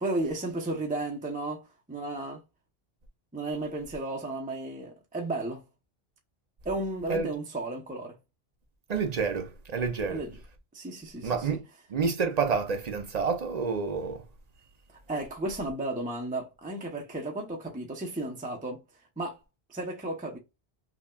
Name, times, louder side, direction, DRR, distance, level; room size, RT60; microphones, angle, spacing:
voice 1, 0.0-1.6 1.9-2.4 3.3-5.6 6.6-8.2 10.1-10.4 10.7-11.6 15.1-18.8 19.2-19.4 19.7-20.4, right 2 dB, 10° right, 0.6 m, -33 dB
voice 2, 8.9-10.2 11.2-11.6 11.9-14.2, right 5 dB, 45° right, 0.6 m, -28 dB
5.6 x 2.2 x 2.3 m
omnidirectional pair, 1.0 m